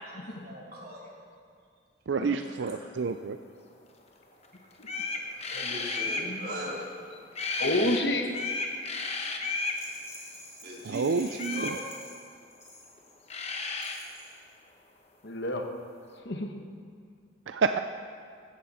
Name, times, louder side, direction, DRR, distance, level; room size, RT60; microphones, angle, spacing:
voice 1, 0.0-1.1 2.6-2.8 5.0-6.9 7.6-7.8 8.7-8.9 10.6-11.9, equal, 50° right, -5 dB, 3.6 m, -41 dB
voice 2, 2.1-3.4 10.8-11.7 17.5-17.8, right 4 dB, 70° right, 8 dB, 0.4 m, -29 dB
sound 1, 4.4-4.5 4.8-6.3 7.3-8.0 8.3-9.8 11.4-11.8 13.0-13.1 13.3-14.0, left 3 dB, 35° left, 1.1 m, -33 dB
voice 3, 6.0-6.7 7.1-7.2 7.6-8.3 15.2-15.7 16.1-16.5, left 1 dB, 60° left, 4 dB, 1.2 m, -31 dB
Rattle, 9.6-13.3 13.7-14.4, left 2 dB, 15° left, 2.0 m, -49 dB
15.0 x 13.5 x 4.3 m, 2.3 s
head